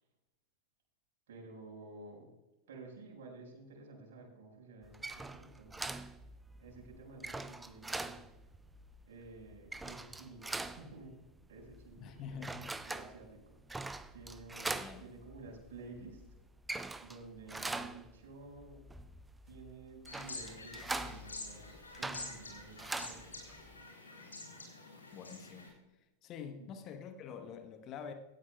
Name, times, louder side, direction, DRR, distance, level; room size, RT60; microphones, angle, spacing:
voice 1, 1.3-2.3 2.7-6.0 6.6-8.2 9.0-11.2 11.5-12.5 12.8-16.2 17.0-18.8 19.4-23.4 26.6-26.7, right 3 dB, 60° right, -1 dB, 5.1 m, -52 dB
sound 1, 4.8-23.8, right 2 dB, 10° right, 0.6 m, -44 dB
voice 2, 12.0-12.7 14.7-15.0 25.1-25.7 26.2-28.1, left 7 dB, 35° left, 7 dB, 1.1 m, -46 dB
sound 2, 20.1-25.7, left 3 dB, 75° left, 3.5 m, -48 dB
17.0 x 13.0 x 2.3 m, 0.99 s
figure-of-eight pair, 90°, 0 cm